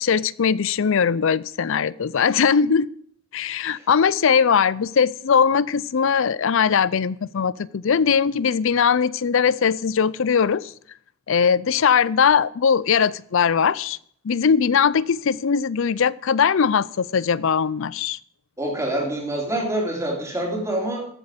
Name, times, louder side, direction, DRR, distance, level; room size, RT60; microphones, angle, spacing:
voice 1, 0.0-2.9 3.3-10.7 11.3-14.0 14.2-18.2, left 6 dB, 60° left, 0.5 m, -20 dB
voice 2, 18.6-21.1, right 1 dB, 15° right, 3.9 m, -26 dB
15.0 x 8.2 x 5.1 m
head